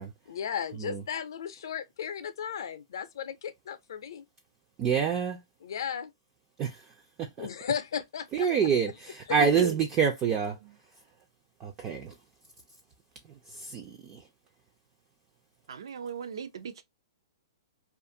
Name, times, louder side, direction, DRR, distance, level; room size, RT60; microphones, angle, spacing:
voice 1, 0.3-4.2 5.6-6.1 7.4-8.5 9.3-9.4, left 8 dB, 60° left, 0.5 m, -35 dB
voice 2, 4.8-5.4 6.6-6.7 7.2-7.5 8.3-10.6 11.6-12.1 13.7-13.9, right 7 dB, 15° right, 0.3 m, -26 dB
voice 3, 9.4-9.7 15.7-16.8, right 8 dB, 75° right, 0.4 m, -33 dB
2.5 x 2.4 x 2.6 m
hypercardioid pair, 175°, 3 cm